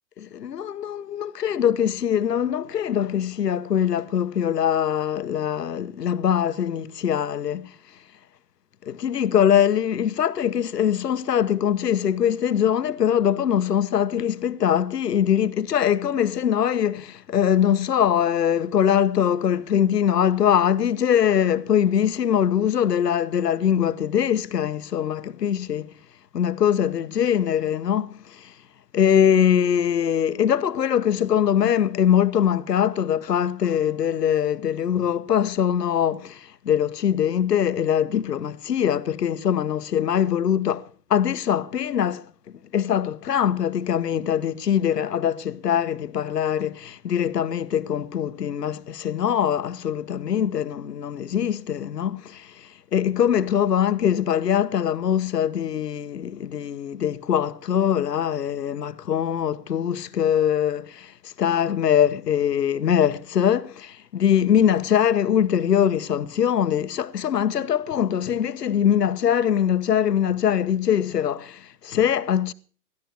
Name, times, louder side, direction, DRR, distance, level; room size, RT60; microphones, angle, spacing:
voice 1, 0.2-7.7 8.8-25.9 26.3-28.5 28.9-42.3 42.7-72.5, left 9 dB, 70° left, 1.1 m, -22 dB
20.5 x 14.0 x 3.5 m
figure-of-eight pair, 110°, 49 cm